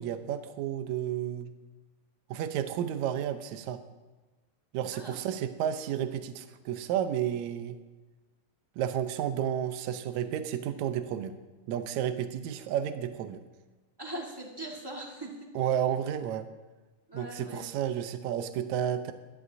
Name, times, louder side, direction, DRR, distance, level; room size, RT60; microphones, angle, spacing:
voice 1, 0.0-1.5 2.3-3.8 4.7-7.8 8.8-11.3 11.7-13.4 15.6-16.5 17.1-19.1, right 10 dB, 75° right, 9 dB, 2.0 m, -31 dB
voice 2, 14.0-15.5 17.1-17.6, right 1 dB, 25° right, -1 dB, 0.5 m, -40 dB
22.0 x 11.0 x 2.7 m, 1.2 s
omnidirectional pair, 3.5 m